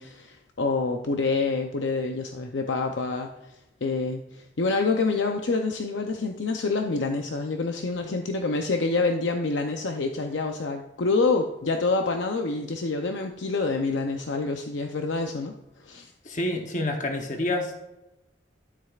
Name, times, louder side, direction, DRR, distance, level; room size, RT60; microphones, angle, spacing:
voice 1, 0.0-3.6 3.8-15.5 15.8-16.1, left 3 dB, 80° left, 4 dB, 0.6 m, -27 dB
voice 2, 16.2-17.9, left 1 dB, 40° left, 3 dB, 0.9 m, -28 dB
12.5 x 7.5 x 2.4 m, 0.97 s
head